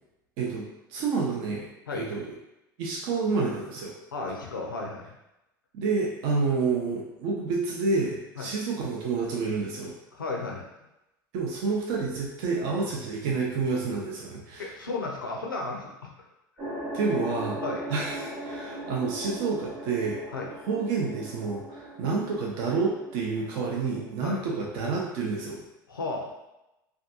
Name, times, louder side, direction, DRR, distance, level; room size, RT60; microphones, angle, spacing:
voice 1, 0.4-1.7 1.9-2.3 2.8-3.9 5.7-9.9 11.3-14.7 16.9-17.6 17.9-20.2 20.7-25.6, right 4 dB, 60° right, -2 dB, 0.5 m, -29 dB
voice 2, 4.1-5.1 8.4-8.5 10.1-10.7 14.6-16.1 17.6-17.9 20.3-20.5 24.2-24.4 25.9-26.3, left 3 dB, 90° left, 0 dB, 0.4 m, -34 dB
sound 1, 16.6-25.3, right 1 dB, 40° right, 1.0 m, -39 dB
2.5 x 2.3 x 2.6 m, 0.92 s
hypercardioid pair, 75°, 11 cm